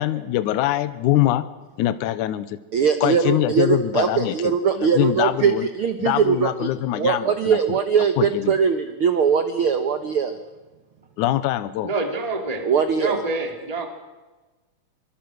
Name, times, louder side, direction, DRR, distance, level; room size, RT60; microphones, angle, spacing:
voice 1, 0.0-1.5 1.8-2.6 3.0-5.7 6.0-7.6 8.2-8.5 11.2-11.9, left 14 dB, 75° left, 12 dB, 2.2 m, -23 dB
voice 2, 2.7-6.7 7.0-10.4 12.6-13.2, right 6 dB, 65° right, 8 dB, 1.4 m, -21 dB
voice 3, 11.8-12.7 12.9-13.9, right 3 dB, 10° right, 4 dB, 2.3 m, -27 dB
24.5 x 24.0 x 6.3 m, 1.2 s
omnidirectional pair, 3.9 m